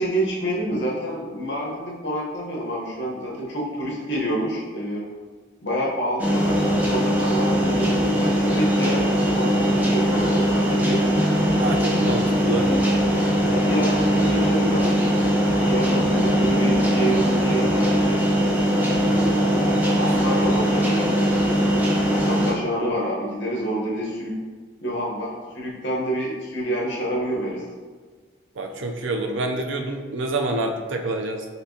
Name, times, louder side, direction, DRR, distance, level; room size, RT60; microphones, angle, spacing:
voice 1, 0.0-5.1 5.6-11.2 13.5-18.2 19.9-21.2 21.7-24.4 24.8-27.7, right 1 dB, 65° left, -3 dB, 1.0 m, -28 dB
sound 1, 6.2-22.5, equal, 10° right, 0.5 m, -20 dB
voice 2, 11.6-12.7 19.1-20.1 28.6-31.4, right 2 dB, 75° right, 3 dB, 0.5 m, -28 dB
4.3 x 3.8 x 2.7 m, 1.5 s
head